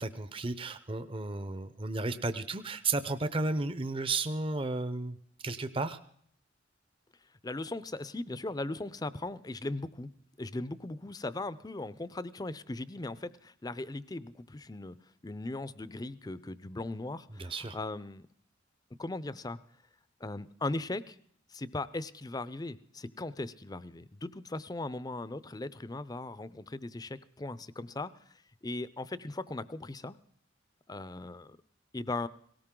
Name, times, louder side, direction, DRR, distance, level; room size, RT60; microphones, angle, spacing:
voice 1, 0.0-5.2 5.4-6.0 17.3-17.8, right 3 dB, 25° right, 11 dB, 0.7 m, -33 dB
voice 2, 7.4-10.1 10.4-15.0 15.2-18.3 19.0-19.6 20.2-21.2 21.5-28.1 28.6-30.2 30.9-31.6 31.9-32.3, left 2 dB, 20° left, 16 dB, 0.5 m, -38 dB
18.0 x 18.0 x 3.8 m, 0.65 s
head